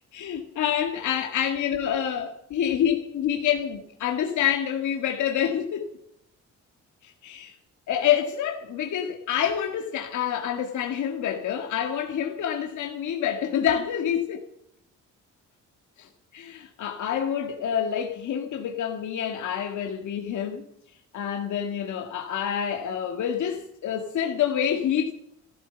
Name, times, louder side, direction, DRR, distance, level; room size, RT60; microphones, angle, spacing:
voice 1, 0.1-5.9 7.0-7.6 7.9-14.4 16.0-16.1 16.3-20.7 21.1-25.1, left 9 dB, 75° left, 1.9 m, -27 dB
14.5 x 13.5 x 6.9 m
cardioid pair, 90°, 30 cm